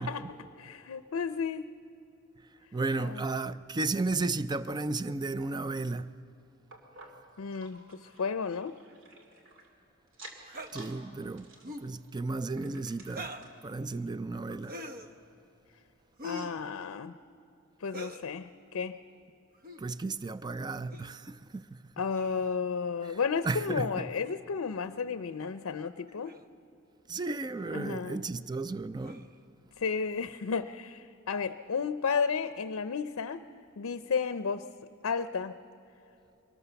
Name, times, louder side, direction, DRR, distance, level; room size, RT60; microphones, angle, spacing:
voice 1, 0.0-1.7 3.0-3.2 7.4-8.8 16.2-17.1 17.8-19.0 22.0-26.3 27.7-28.4 29.8-33.4 33.8-34.7 35.0-35.5, left 5 dB, 80° left, 0.5 m, -33 dB
voice 2, 2.7-6.1 10.7-11.5 11.8-13.3 13.6-14.8 19.8-21.8 23.1-23.2 23.4-24.1 27.1-29.3, right 3 dB, 20° right, 0.4 m, -34 dB
sound 1, 6.7-9.7 10.1-11.0 11.3-13.6 14.1-14.2 14.5-14.6 15.2-15.3, right 1 dB, 65° right, 2.6 m, -53 dB
sound 2, 10.5-10.7 11.6-11.9 13.0-13.5 14.6-15.1 16.2-16.6 17.9-18.3 19.5-19.8 20.9-21.1 22.1-22.6 24.2-24.4 25.4-25.5 26.2-26.5 27.2-27.4 29.0-29.4, left 1 dB, 45° right, 0.9 m, -43 dB
23.5 x 18.5 x 6.9 m
head